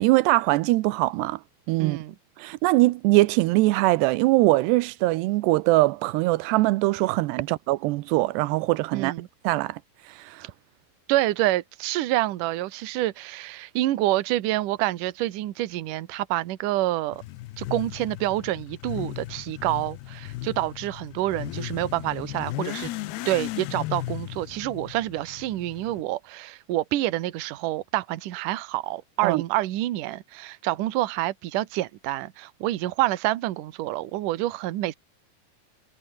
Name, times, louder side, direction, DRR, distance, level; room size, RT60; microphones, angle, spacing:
voice 1, 0.0-1.4 1.7-2.0 2.4-9.1 9.4-9.8 10.2-10.5 29.2-29.4, right 20 dB, 85° right, 2.8 m, -22 dB
voice 2, 1.8-2.2 8.9-9.3 11.1-17.2 17.6-22.9 23.3-34.9, right 16 dB, 65° right, 2.4 m, -27 dB
Motorcycle / Accelerating revving vroom, 17.1-26.0, left 17 dB, 80° left, 2.9 m, -36 dB
omnidirectional pair, 4.7 m